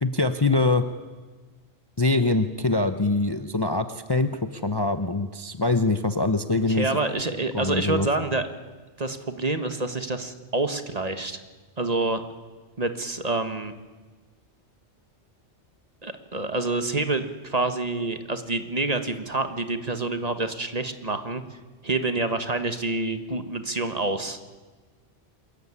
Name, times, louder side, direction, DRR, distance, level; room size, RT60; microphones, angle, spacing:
voice 1, 0.0-0.8 2.0-6.9 7.5-8.1, left 2 dB, 25° left, 9 dB, 0.8 m, -24 dB
voice 2, 6.7-8.4 9.0-11.4 11.8-12.2 12.8-13.7 16.0-21.4 21.8-24.4, right 2 dB, 35° right, 9 dB, 1.5 m, -27 dB
25.0 x 14.5 x 9.9 m, 1.3 s
omnidirectional pair, 1.2 m